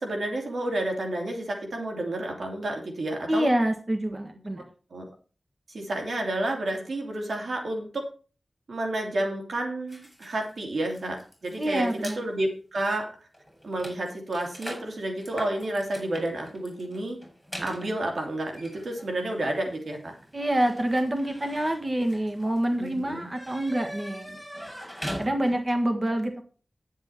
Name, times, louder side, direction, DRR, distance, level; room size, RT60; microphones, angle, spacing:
voice 1, 0.0-3.5 4.9-5.1 5.7-8.1 8.7-11.9 12.2-13.1 13.6-17.2 17.6-20.1 22.8-23.3, right 1 dB, 80° right, 1 dB, 2.9 m, -30 dB
voice 2, 3.3-4.6 11.6-12.2 20.3-24.8 25.2-26.4, right 1 dB, 35° right, 5 dB, 1.5 m, -27 dB
sound 1, 9.9-12.2 12.9-13.1 13.3-25.8, equal, 5° right, 5.7 m, -42 dB
10.0 x 8.4 x 4.4 m, 0.38 s
wide cardioid pair, 90°, 0 cm